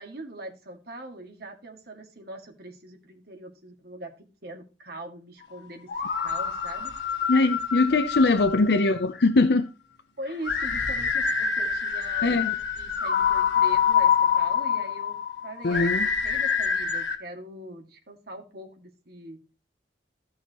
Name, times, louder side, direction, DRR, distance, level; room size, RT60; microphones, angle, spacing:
voice 1, 0.0-4.1 4.4-5.9 6.2-6.9 7.8-8.2 10.2-15.2 15.4-19.4, right 1 dB, 60° right, 2.2 m, -41 dB
sound 1, 5.9-9.0 10.4-17.2, left 7 dB, 90° left, 1.5 m, -26 dB
voice 2, 7.3-9.7 12.2-12.5 15.6-16.1, left 3 dB, 65° left, 0.6 m, -21 dB
14.5 x 6.3 x 3.0 m
head